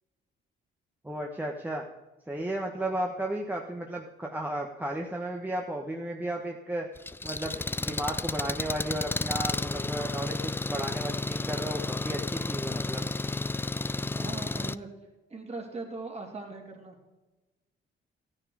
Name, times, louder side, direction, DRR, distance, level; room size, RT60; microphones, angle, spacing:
voice 1, 1.0-1.8 2.3-6.9 7.2-13.1, right 1 dB, 10° right, 1 dB, 1.2 m, -34 dB
voice 2, 2.8-3.1 14.1-14.9 15.3-17.0, right 3 dB, 30° right, 1 dB, 3.0 m, -40 dB
Engine, 7.0-14.7, left 3 dB, 10° left, 0.3 m, -32 dB
13.5 x 9.9 x 4.8 m, 1.1 s
cardioid pair, 90°, 20 cm